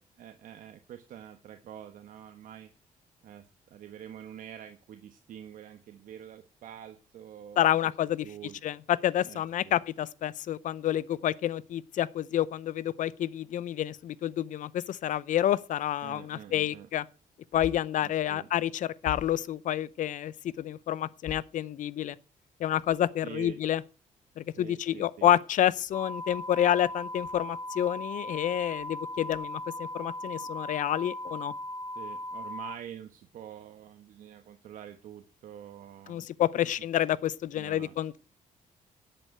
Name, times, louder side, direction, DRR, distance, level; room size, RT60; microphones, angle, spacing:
voice 1, 0.2-2.7 3.2-7.8 8.2-8.6 9.2-9.8 16.0-16.9 18.0-18.5 23.2-23.6 24.6-25.3 31.9-36.3 36.6-36.7 37.5-37.9, right 10 dB, 70° right, 1.3 m, -46 dB
voice 2, 7.6-8.3 8.6-17.0 17.5-22.2 22.6-23.8 24.4-31.5 36.1-38.2, left 11 dB, 65° left, 0.7 m, -29 dB
sound 1, 25.9-32.8, left 1 dB, 20° left, 0.7 m, -38 dB
11.0 x 8.0 x 7.9 m
cardioid pair, 125°, 14 cm